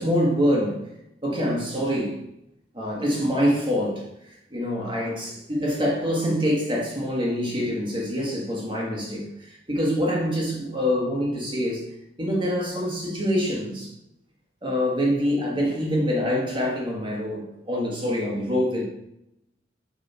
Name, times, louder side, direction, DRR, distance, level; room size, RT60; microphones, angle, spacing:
voice 1, 0.0-0.9 1.2-2.2 2.7-11.9 12.2-13.9 14.6-18.8, equal, 25° right, -3 dB, 1.4 m, -25 dB
6.8 x 3.7 x 4.2 m, 0.83 s
head